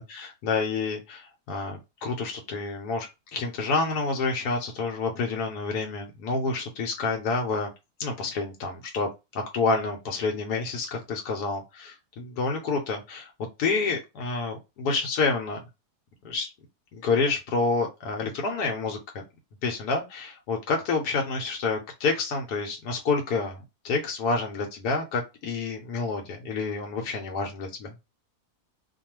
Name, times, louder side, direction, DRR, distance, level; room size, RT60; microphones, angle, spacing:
voice 1, 0.0-7.7 8.0-13.3 13.6-15.6 16.2-16.5 16.9-19.2 19.6-27.9, left 4 dB, 85° left, 2 dB, 1.2 m, -28 dB
2.6 x 2.3 x 3.0 m, 0.24 s
omnidirectional pair, 1.7 m